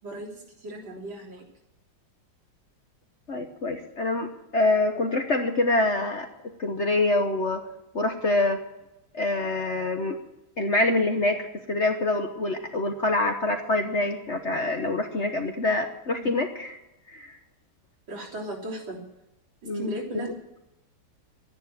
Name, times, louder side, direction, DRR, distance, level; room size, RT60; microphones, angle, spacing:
voice 1, 0.0-1.4 16.2-16.3 18.1-19.0 19.6-20.3, right 1 dB, 70° right, -3 dB, 4.2 m, -36 dB
voice 2, 3.3-6.3 6.6-7.6 7.9-8.6 9.1-10.2 10.6-16.7 17.1-17.4 19.6-19.9 20.1-20.3, left 2 dB, 45° left, 5 dB, 1.1 m, -25 dB
12.0 x 10.5 x 9.2 m, 0.93 s
omnidirectional pair, 2.2 m